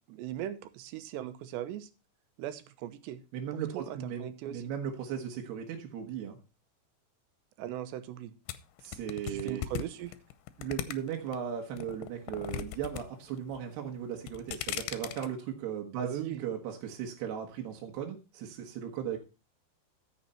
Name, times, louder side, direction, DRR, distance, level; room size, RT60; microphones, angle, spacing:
voice 1, 0.1-1.9 2.4-3.2 3.7-4.6 7.6-8.3 9.2-10.1 16.0-16.4, right 12 dB, 90° right, 11 dB, 3.1 m, -39 dB
voice 2, 3.3-6.4 8.8-9.7 10.6-19.2, right 8 dB, 75° right, 1 dB, 3.3 m, -37 dB
sound 1, 8.5-11.4 11.8-13.0 13.3-13.8 14.2-15.3, left 12 dB, 75° left, 2.5 m, -38 dB
14.0 x 6.7 x 4.3 m, 0.30 s
omnidirectional pair, 5.0 m